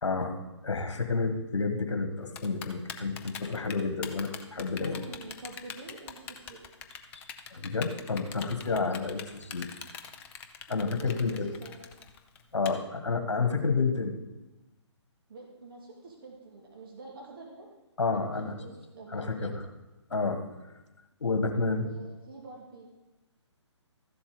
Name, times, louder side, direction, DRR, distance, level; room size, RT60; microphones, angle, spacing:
voice 1, 0.0-5.1 7.5-9.7 10.7-11.5 12.5-14.1 18.0-18.6 19.1-19.7 20.1-20.5 21.2-21.9, left 4 dB, 70° left, 7 dB, 1.6 m, -30 dB
Typing, 2.4-12.7, left 8 dB, 10° left, 0.4 m, -42 dB
voice 2, 4.5-6.6 6.9-7.0 8.6-8.8 10.7-11.7 15.3-17.7 18.1-18.3 18.6-19.6 21.7-22.9, right 3 dB, 50° right, -1 dB, 2.1 m, -47 dB
13.5 x 7.2 x 5.1 m, 1.0 s
figure-of-eight pair, 140°, 15 cm